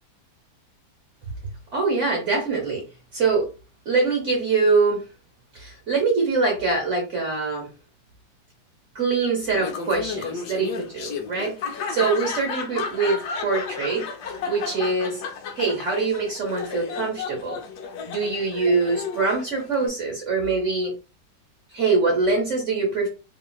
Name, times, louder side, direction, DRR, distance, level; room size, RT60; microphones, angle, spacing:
voice 1, 1.7-2.8 3.1-3.5 3.8-5.0 5.5-7.7 8.9-11.6 11.9-14.1 14.5-15.2 15.6-17.6 18.0-20.9 21.7-23.1, right 4 dB, 50° right, 0 dB, 1.1 m, -23 dB
Laughter, 9.5-19.9, left 5 dB, 70° left, 1.1 m, -33 dB
3.0 x 2.7 x 2.3 m, 0.31 s
omnidirectional pair, 2.0 m